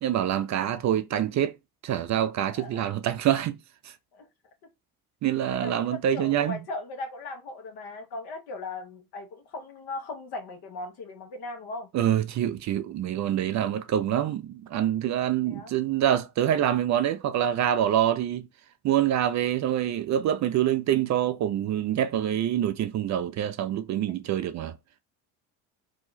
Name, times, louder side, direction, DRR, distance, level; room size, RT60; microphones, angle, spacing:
voice 1, 0.0-1.5 1.8-3.6 5.2-6.6 11.9-18.5 18.8-24.7, right 11 dB, 40° right, 0.5 m, -26 dB
voice 2, 2.5-2.9 4.1-4.3 5.5-11.9 15.4-15.7 24.1-24.2, left 2 dB, 65° left, 1.2 m, -38 dB
2.8 x 2.3 x 3.9 m
hypercardioid pair, 70°, 42 cm